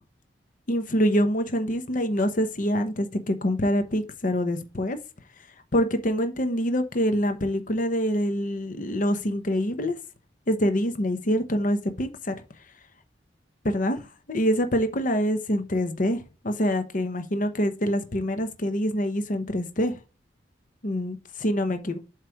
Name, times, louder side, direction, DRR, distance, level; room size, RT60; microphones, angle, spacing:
voice 1, 0.7-5.0 5.7-9.9 10.5-12.3 13.6-20.0 20.8-22.0, equal, 45° left, 0.9 m, -25 dB
7.7 x 3.3 x 4.6 m
head